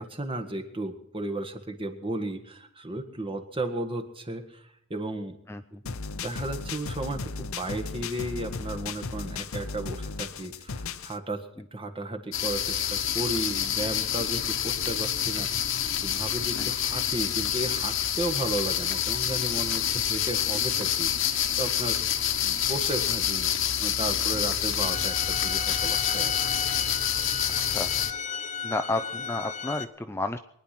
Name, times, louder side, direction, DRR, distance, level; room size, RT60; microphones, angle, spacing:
voice 1, 0.0-5.4 5.8-23.5 23.8-26.5, right 2 dB, 25° right, 5 dB, 1.7 m, -34 dB
voice 2, 5.5-5.8 16.6-16.7 27.5-27.9 28.6-30.4, left 2 dB, 10° left, 8 dB, 0.5 m, -32 dB
sound 1, 5.9-11.2, left 4 dB, 80° left, 0.8 m, -35 dB
sound 2, 12.3-28.1, left 9 dB, 65° left, 1.2 m, -27 dB
sound 3, 24.8-29.8, left 6 dB, 35° left, 1.0 m, -35 dB
23.0 x 10.0 x 6.0 m, 0.72 s
head